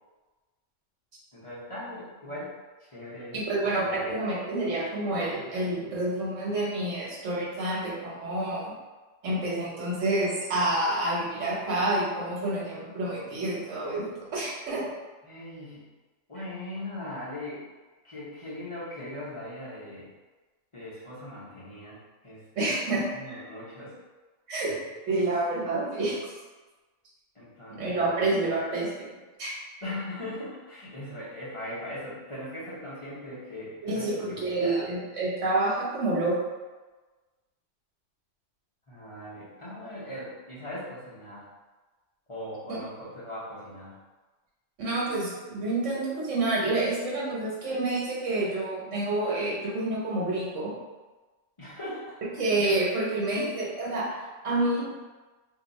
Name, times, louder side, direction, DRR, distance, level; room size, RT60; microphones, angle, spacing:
voice 1, 1.3-2.5 2.8-3.4 3.8-4.3 15.2-15.9 16.3-17.6 18.0-20.1 20.7-23.9 27.3-28.3 29.8-34.9 38.9-41.5 42.3-43.9 51.6-52.2 53.4-53.5, left 1 dB, 30° left, -10 dB, 0.9 m, -40 dB
voice 2, 3.3-8.7 9.2-14.9 22.6-23.0 24.5-24.7 25.1-26.2 27.8-29.1 29.4-29.5 33.8-36.4 42.7-42.8 44.8-50.7 52.4-54.1 54.4-54.8, right 2 dB, 90° right, -5 dB, 1.3 m, -28 dB
2.8 x 2.3 x 3.9 m, 1.2 s
omnidirectional pair, 1.2 m